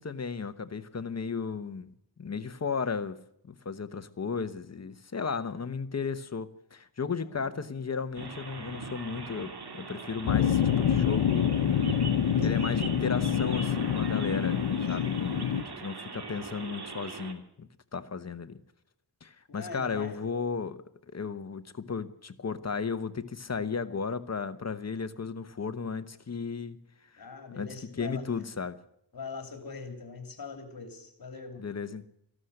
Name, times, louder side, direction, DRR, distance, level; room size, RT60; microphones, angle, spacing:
voice 1, 0.0-1.9 2.2-3.2 3.4-11.6 12.4-14.6 14.9-15.3 15.7-18.6 19.2-26.8 27.2-27.3 27.6-28.8 31.6-32.1, left 5 dB, 40° left, 11 dB, 1.0 m, -35 dB
voice 2, 7.2-7.6 12.6-13.0 15.0-15.2 19.5-20.2 27.2-28.5 29.1-31.6, left 4 dB, 55° left, 6 dB, 3.0 m, -43 dB
sound 1, 8.2-17.3, right 4 dB, 65° right, 2.5 m, -41 dB
sound 2, 10.3-15.6, left 8 dB, 85° left, 1.0 m, -26 dB
14.5 x 12.5 x 7.8 m, 0.73 s
wide cardioid pair, 135°, 42 cm